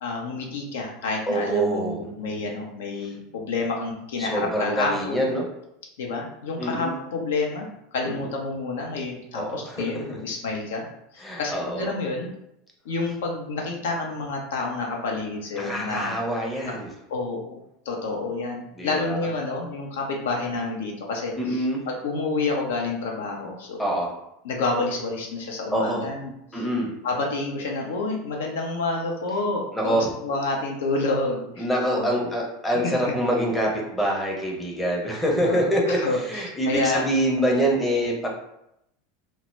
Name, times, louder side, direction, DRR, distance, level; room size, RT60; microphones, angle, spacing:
voice 1, 0.0-5.3 6.0-10.8 11.1-12.3 12.9-16.2 16.6-16.7 17.1-23.8 24.4-26.6 27.0-32.1 32.8-32.9 35.4-37.0, left 3 dB, 60° left, 0 dB, 0.4 m, -29 dB
voice 2, 1.3-2.0 4.2-5.4 6.6-6.9 8.1-8.3 9.3-10.2 11.2-11.9 15.6-16.9 18.7-19.3 21.4-21.8 23.8-24.1 25.7-26.1 26.5-26.9 29.7-30.1 31.6-38.3, right 1 dB, 10° left, -2 dB, 0.6 m, -25 dB
2.1 x 2.0 x 3.1 m, 0.82 s
figure-of-eight pair, 80°, 0 cm